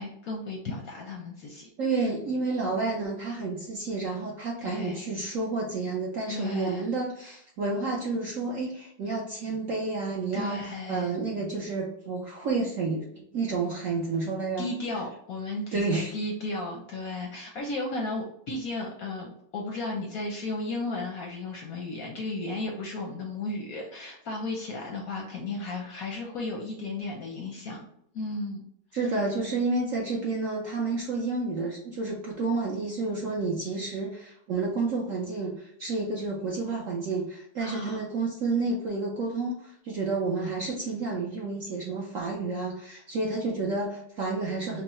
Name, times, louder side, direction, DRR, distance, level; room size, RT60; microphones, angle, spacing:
voice 1, 0.0-2.1 4.6-5.0 5.3-5.4 6.3-6.9 7.2-7.4 10.3-11.1 14.6-15.9 16.1-27.9 28.1-28.6 37.6-38.0, left 2 dB, 65° left, 0 dB, 0.9 m, -34 dB
voice 2, 1.8-14.7 15.7-16.1 28.9-44.8, right 3 dB, 65° right, -2 dB, 0.8 m, -30 dB
5.4 x 2.1 x 3.0 m, 0.70 s
omnidirectional pair, 2.1 m